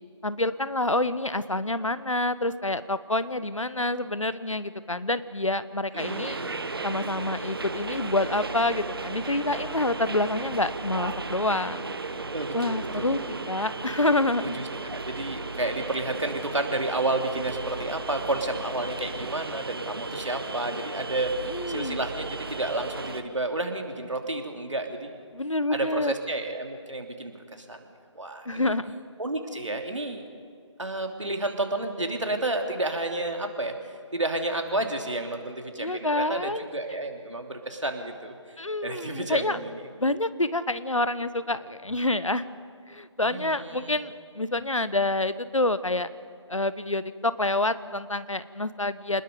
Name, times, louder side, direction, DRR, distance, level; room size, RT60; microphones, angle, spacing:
voice 1, 0.2-6.4 6.8-11.9 12.5-13.2 13.5-14.6 21.5-22.0 25.3-26.1 28.5-28.9 35.8-36.7 38.6-39.6 40.0-42.5 42.9-46.1 46.5-49.2, left 2 dB, 80° left, 14 dB, 1.1 m, -27 dB
voice 2, 5.9-6.5 12.3-13.4 14.5-25.2 25.7-27.9 28.1-28.7 29.2-30.2 30.8-33.7 34.1-38.6 38.8-39.7 43.2-43.9, right 2 dB, 70° right, 4 dB, 3.0 m, -31 dB
sound 1, 6.0-23.2, right 3 dB, 50° right, 1.4 m, -35 dB
27.5 x 20.5 x 5.3 m, 2.2 s
figure-of-eight pair, 155°, 16 cm